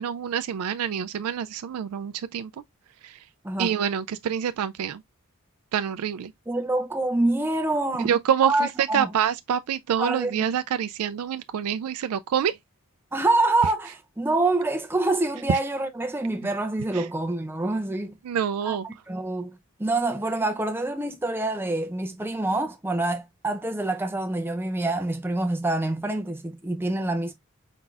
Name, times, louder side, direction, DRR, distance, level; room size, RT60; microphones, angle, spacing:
voice 1, 0.0-2.5 3.0-3.2 3.6-5.0 5.7-6.3 8.0-12.5 15.5-15.6 16.9-17.1 18.3-18.9, right 8 dB, 85° right, 0.3 m, -26 dB
voice 2, 6.5-8.1 8.4-9.1 10.0-10.6 13.1-18.1 18.6-27.3, right 2 dB, 10° right, 0.5 m, -26 dB
4.5 x 3.9 x 2.3 m
head